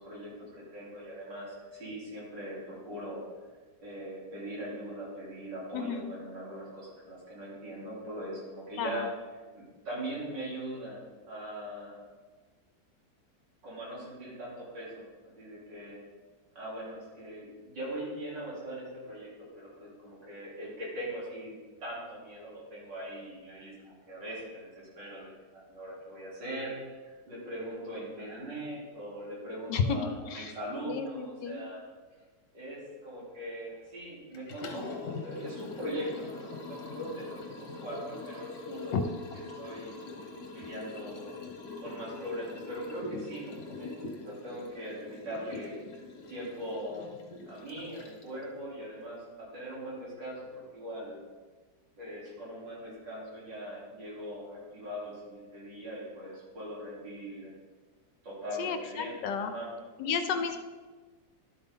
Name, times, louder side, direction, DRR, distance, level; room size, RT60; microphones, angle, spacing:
voice 1, 0.0-3.2 3.8-9.1 9.5-12.0 13.6-15.1 15.4-16.0 16.5-21.6 21.8-31.8 32.5-38.9 39.6-40.0 40.5-41.2 41.8-45.8 46.3-47.1 47.5-51.2 52.0-57.5 58.2-59.7 60.3-60.4, right 1 dB, 85° right, -6 dB, 4.1 m, -41 dB
voice 2, 5.7-6.1 8.8-9.1 29.7-30.5 30.8-31.6 38.9-39.0 58.6-59.5 60.0-60.6, left 6 dB, 80° left, 9 dB, 1.4 m, -32 dB
Liquid, 34.3-48.4, left 2 dB, 60° left, 1.5 m, -43 dB
11.5 x 8.1 x 3.8 m, 1.4 s
omnidirectional pair, 1.9 m